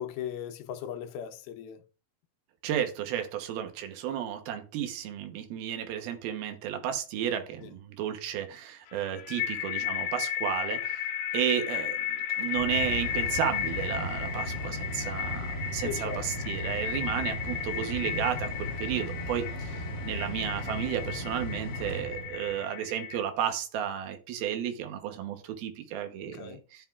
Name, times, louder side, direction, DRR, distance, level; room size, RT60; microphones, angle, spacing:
voice 1, 0.0-1.8 7.6-7.7 8.9-9.1 15.8-16.5 26.2-26.6, left 9 dB, 75° left, 2.5 m, -38 dB
voice 2, 2.6-11.0 11.3-26.9, right 10 dB, 75° right, 2.8 m, -33 dB
sound 1, 8.9-23.2, left 10 dB, 60° left, 2.1 m, -34 dB
Mechanical fan, 12.2-22.7, equal, 20° right, 2.6 m, -37 dB
13.5 x 6.0 x 2.4 m
omnidirectional pair, 4.6 m